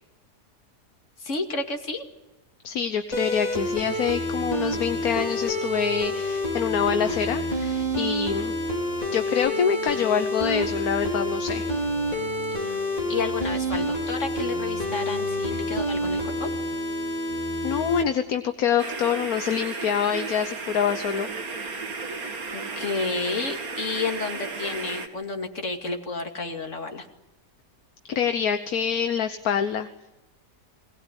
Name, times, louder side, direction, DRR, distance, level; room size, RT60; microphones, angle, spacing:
voice 1, 1.2-2.1 12.6-16.5 22.5-27.1, left 3 dB, 50° left, 4 dB, 2.8 m, -31 dB
voice 2, 2.6-8.5 9.1-11.7 17.6-21.3 28.1-29.9, left 8 dB, 70° left, 8 dB, 1.5 m, -26 dB
sound 1, 3.1-18.0, equal, 25° left, 4.3 m, -28 dB
sound 2, 18.8-25.1, right 4 dB, 65° right, 2.5 m, -34 dB
22.0 x 18.5 x 9.8 m, 0.97 s
omnidirectional pair, 1.7 m